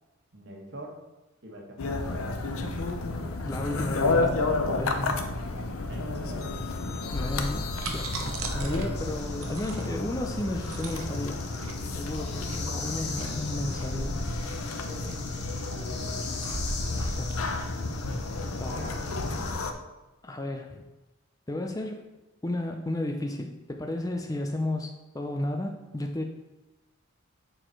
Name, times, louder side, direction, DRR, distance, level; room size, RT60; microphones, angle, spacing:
voice 1, 0.3-0.9 1.4-2.0 5.1-5.3 5.9-6.6 8.5-8.6 14.6-15.3 15.6-16.3 18.7-19.5, right 1 dB, 55° right, 0 dB, 1.4 m, -44 dB
sound 1, 1.8-19.7, left 3 dB, 80° left, 0.6 m, -31 dB
voice 2, 3.4-4.4 4.8-5.2 7.1-11.4 12.0-14.2 16.9-17.4 18.5-18.9 20.2-20.8 21.5-22.1 22.4-26.2, left 1 dB, 15° left, 4 dB, 0.4 m, -33 dB
sound 2, 7.7-18.8, right 2 dB, 80° right, 0.8 m, -38 dB
sound 3, 8.9-19.5, left 5 dB, 50° left, 1.0 m, -42 dB
6.7 x 4.4 x 4.5 m, 1.1 s
head